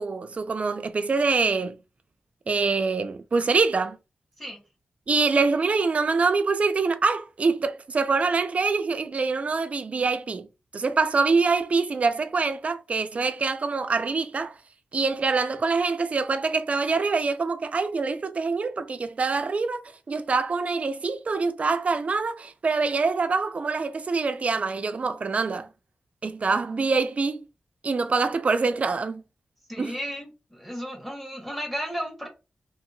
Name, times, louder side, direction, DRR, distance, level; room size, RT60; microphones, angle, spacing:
voice 1, 0.0-1.8 2.5-4.0 5.1-10.5 10.7-14.5 14.9-19.8 20.1-25.7 26.2-27.4 27.8-29.2 29.8-29.9, right 4 dB, 45° right, 0.4 m, -25 dB
voice 2, 29.7-32.3, equal, 5° left, 1.3 m, -34 dB
2.8 x 2.7 x 2.6 m
wide cardioid pair, 105°, 3 cm